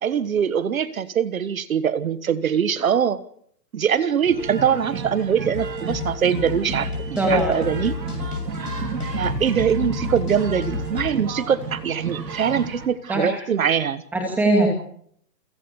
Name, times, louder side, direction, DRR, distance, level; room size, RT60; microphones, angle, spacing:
voice 1, 0.0-3.2 3.7-7.9 9.2-14.0, right 8 dB, 55° right, 15 dB, 1.4 m, -23 dB
sound 1, 4.2-12.9, right 5 dB, 85° right, 4.9 m, -32 dB
sound 2, 5.5-11.1, left 6 dB, 65° left, 7.1 m, -31 dB
voice 2, 7.2-7.7 13.1-13.4 14.1-14.7, right 1 dB, 5° right, 2 dB, 2.7 m, -21 dB
28.5 x 17.0 x 7.1 m, 0.67 s
hypercardioid pair, 175°, 49 cm